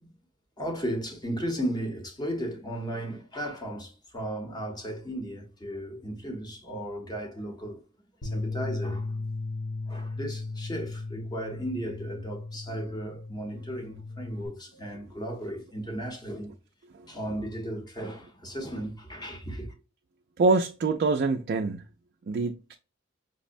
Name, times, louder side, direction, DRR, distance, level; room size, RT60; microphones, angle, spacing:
voice 1, 0.6-7.8 8.2-9.2 9.9-16.5 17.1-19.7, right 1 dB, 20° left, 0.9 m, -35 dB
Bass guitar, 8.2-14.5, left 3 dB, 60° left, 0.8 m, -36 dB
voice 2, 20.4-21.9 22.3-22.8, right 3 dB, 50° right, 0.3 m, -25 dB
5.2 x 2.1 x 2.5 m
head